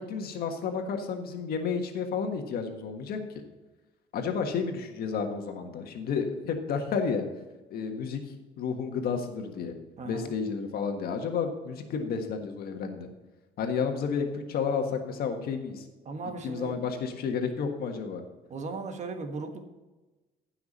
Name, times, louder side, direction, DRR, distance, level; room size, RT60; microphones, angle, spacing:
voice 1, 0.0-3.2 4.1-7.3 7.7-8.2 8.6-9.7 10.0-13.1 13.6-15.9 16.4-18.2, left 6 dB, 65° left, 5 dB, 1.5 m, -31 dB
voice 2, 10.0-10.3 16.0-16.8 18.5-19.6, right 3 dB, 45° right, 5 dB, 1.5 m, -37 dB
15.5 x 6.0 x 4.2 m, 1.2 s
cardioid pair, 110°, 17 cm